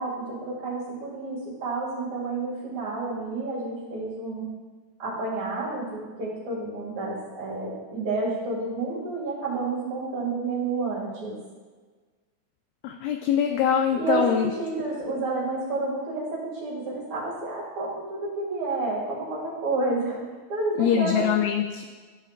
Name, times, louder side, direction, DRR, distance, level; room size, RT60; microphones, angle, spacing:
voice 1, 0.0-4.5 5.0-11.4 13.9-20.2 20.5-21.3, right 3 dB, 50° right, -10 dB, 3.0 m, -30 dB
voice 2, 12.8-14.5 20.8-21.8, left 9 dB, 85° left, 3 dB, 2.2 m, -23 dB
13.0 x 7.0 x 2.5 m, 1.4 s
omnidirectional pair, 4.7 m